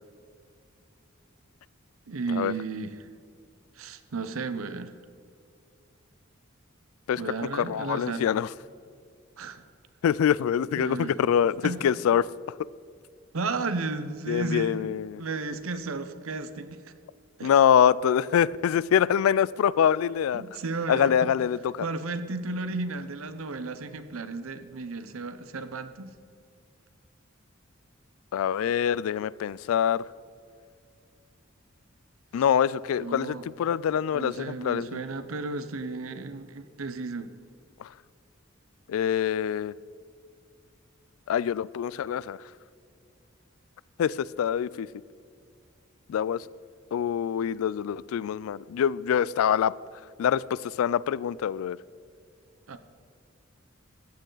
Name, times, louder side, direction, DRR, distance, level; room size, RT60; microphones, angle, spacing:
voice 1, 2.1-3.1 3.8-4.9 7.2-8.3 9.4-9.6 10.8-11.1 11.6-11.9 13.3-16.8 17.4-17.5 20.3-21.3 21.8-26.1 33.0-33.4 34.1-37.3 52.7-52.8, right 3 dB, 85° right, 10 dB, 0.8 m, -34 dB
voice 2, 7.5-8.5 10.0-12.2 14.3-15.2 17.4-20.4 20.9-21.9 28.3-30.0 32.3-35.0 38.9-39.7 41.3-42.4 44.0-44.9 46.1-46.4 46.9-49.7 50.2-51.8, left 8 dB, 90° left, 19 dB, 0.3 m, -25 dB
14.0 x 9.1 x 3.9 m, 2.3 s
head